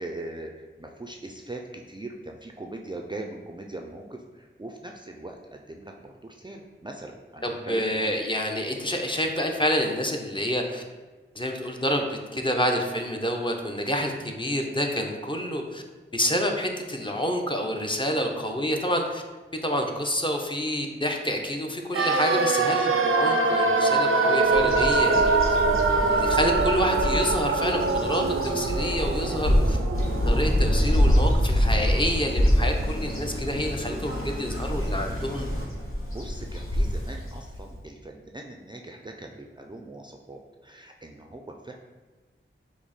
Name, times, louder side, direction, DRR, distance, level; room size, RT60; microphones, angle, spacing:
voice 1, 0.0-8.1 36.1-41.7, right 2 dB, 20° right, 2 dB, 0.4 m, -40 dB
voice 2, 7.4-10.8 11.3-15.8 16.1-19.2 19.6-25.4 26.1-29.8 30.2-35.5, equal, 25° left, 2 dB, 0.6 m, -28 dB
sound 1, 21.9-31.9 32.1-32.2, right 3 dB, 85° right, 0.4 m, -24 dB
Bird vocalization bird call bird song, 24.5-37.8, equal, 90° left, 0.9 m, -26 dB
5.9 x 2.1 x 4.0 m, 1.3 s
wide cardioid pair, 55°, 21 cm